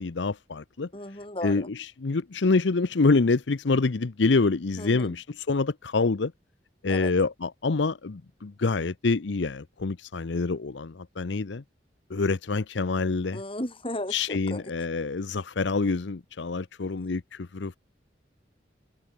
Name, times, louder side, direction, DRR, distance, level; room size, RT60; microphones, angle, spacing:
voice 1, 0.0-0.9 1.4-6.3 6.8-11.6 12.1-13.4 14.1-17.8, left 3 dB, 75° left, 0.7 m, -26 dB
voice 2, 0.9-1.7 4.8-5.2 6.9-7.1 13.3-14.6, left 1 dB, 30° left, 7.6 m, -35 dB
head